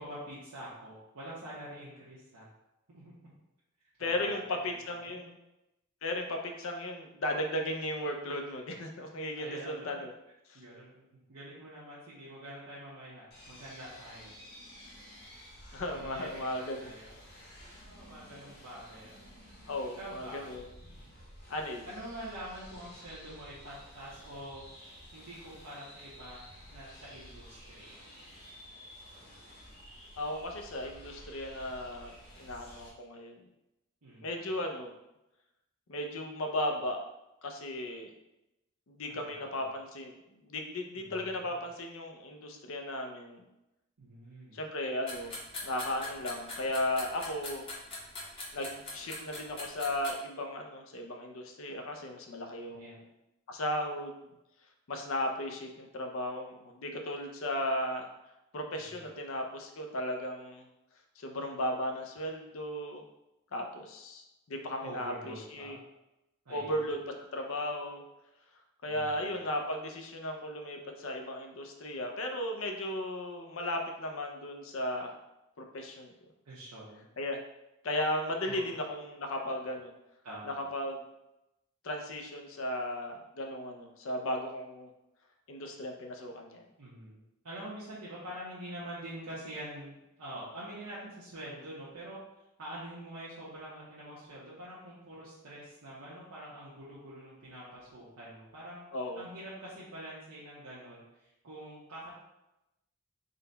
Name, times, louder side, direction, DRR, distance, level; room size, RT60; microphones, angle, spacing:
voice 1, 0.0-2.5 2.9-3.1 4.0-5.3 9.3-9.9 10.5-14.4 15.9-17.1 17.9-19.1 20.0-20.4 21.8-24.7 25.1-26.4 26.7-28.0 34.0-34.3 39.1-39.3 39.5-39.8 40.9-41.5 44.0-44.6 52.7-53.0 59.0-59.1 64.8-65.8 66.4-67.0 68.9-69.2 76.4-77.1 78.5-78.6 80.2-80.7 86.8-87.2 87.4-92.2 92.6-98.8 99.2-102.1, right 1 dB, 85° right, -8 dB, 0.9 m, -46 dB
voice 2, 4.0-5.4 6.0-10.1 10.5-10.6 15.7-16.9 19.7-20.6 21.5-21.9 30.2-33.4 34.2-34.9 35.9-37.0 37.4-38.1 38.9-40.1 40.4-43.4 44.5-45.3 45.6-47.7 48.5-53.1 53.5-54.2 54.9-58.1 58.5-60.6 61.2-63.0 63.5-65.8 66.5-67.0 67.3-68.0 68.8-75.1 75.6-76.1 77.2-77.4 77.8-79.9 80.5-81.0 81.8-84.9 85.5-86.6 98.9-99.3, left 1 dB, 60° left, 3 dB, 0.5 m, -36 dB
sound 1, 13.3-32.9, equal, 45° left, 1.1 m, -52 dB
sound 2, 45.1-50.1, left 2 dB, 25° left, 0.9 m, -42 dB
3.8 x 2.2 x 3.9 m, 0.93 s
head